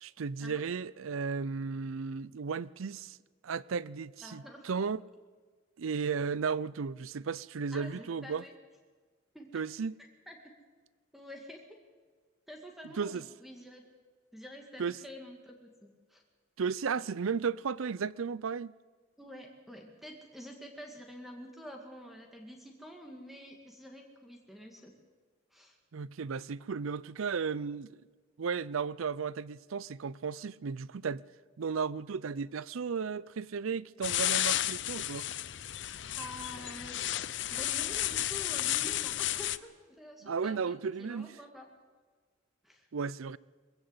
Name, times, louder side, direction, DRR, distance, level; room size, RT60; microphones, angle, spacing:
voice 1, 0.0-3.2 3.4-5.0 5.8-8.4 9.5-9.9 13.0-13.2 14.8-15.0 16.6-18.7 25.9-28.0 28.4-31.2 31.6-35.3 40.2-41.3 42.9-43.4, right 5 dB, 85° right, 0.5 m, -34 dB
voice 2, 4.2-4.7 7.7-8.5 9.3-9.6 10.3-10.5 11.1-11.6 12.5-13.8 14.3-16.2 19.2-25.0 25.5-25.8 36.2-37.1 37.5-41.7 42.6-42.9, equal, ahead, 2.0 m, -48 dB
sound 1, 34.0-39.6, left 13 dB, 60° left, 0.6 m, -32 dB
22.5 x 15.5 x 8.1 m
head